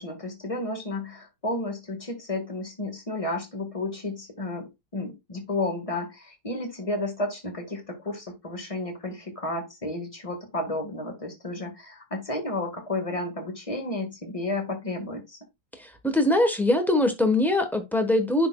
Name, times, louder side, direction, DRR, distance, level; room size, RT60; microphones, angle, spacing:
voice 1, 0.0-15.4, left 2 dB, 20° left, 1.6 m, -32 dB
voice 2, 15.8-18.5, left 1 dB, ahead, 0.8 m, -22 dB
10.5 x 4.2 x 2.3 m
omnidirectional pair, 1.9 m